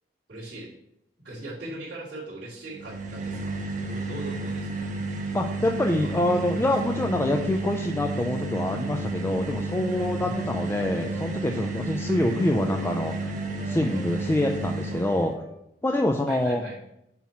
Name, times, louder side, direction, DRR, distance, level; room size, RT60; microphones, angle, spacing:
voice 1, 0.3-0.7 1.2-4.9 5.7-6.7 10.2-10.5 16.3-16.8, right 2 dB, 70° right, -13 dB, 2.6 m, -40 dB
sound 1, 2.7-15.3, right 2 dB, 45° right, 0.8 m, -32 dB
voice 2, 5.3-13.4 13.6-15.3 15.8-16.6, left 1 dB, 15° left, 2 dB, 0.4 m, -26 dB
sound 2, 9.2-11.8 12.2-15.5, left 1 dB, 65° left, 1.6 m, -44 dB
7.2 x 3.0 x 5.7 m, 0.81 s
head